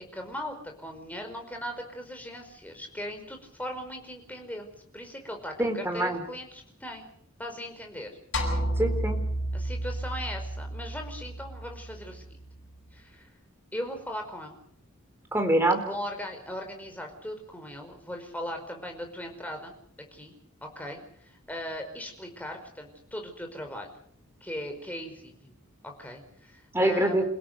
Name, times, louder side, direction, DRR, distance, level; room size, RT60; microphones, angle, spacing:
voice 1, 0.1-7.1 7.4-8.1 9.5-12.2 12.9-13.3 13.7-14.6 15.7-19.7 20.1-20.3 20.6-23.9 24.4-25.6 25.8-27.2, equal, 5° left, 4 dB, 5.1 m, -39 dB
voice 2, 5.6-6.2 8.8-9.2 15.3-15.8 26.7-27.2, right 1 dB, 10° right, 6 dB, 3.8 m, -24 dB
sound 1, 8.3-12.7, right 1 dB, 55° left, 7.6 m, -32 dB
28.5 x 17.0 x 6.7 m, 0.63 s
head